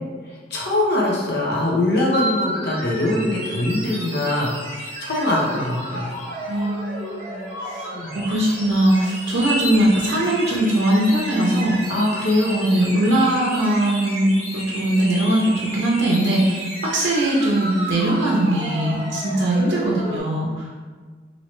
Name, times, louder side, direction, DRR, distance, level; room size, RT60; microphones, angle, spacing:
voice 1, 0.5-6.1 7.9-8.2 11.9-12.6, left 1 dB, 65° left, -3 dB, 0.8 m, -22 dB
sound 1, 2.1-20.2, right 1 dB, 35° left, 1.4 m, -32 dB
voice 2, 6.5-7.9 8.1-11.8 12.4-20.8, right 1 dB, 80° right, -4 dB, 0.5 m, -20 dB
3.1 x 2.7 x 3.0 m, 1.5 s
head